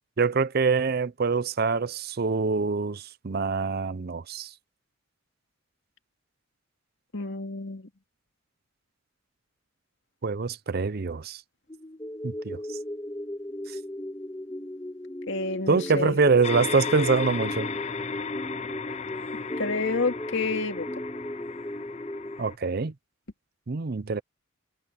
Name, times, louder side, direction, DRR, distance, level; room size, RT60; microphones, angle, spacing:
voice 1, 0.2-4.5 10.2-11.4 12.2-12.6 15.7-17.7 22.4-22.9 23.7-24.2, right 4 dB, 50° right, 0.6 m, -25 dB
voice 2, 7.1-7.9 15.3-16.2 19.6-20.9, left 3 dB, 65° left, 2.3 m, -29 dB
sound 1, 11.7-22.4, left 1 dB, 15° left, 1.9 m, -37 dB
sound 2, 16.4-22.5, left 4 dB, 35° left, 0.7 m, -35 dB
head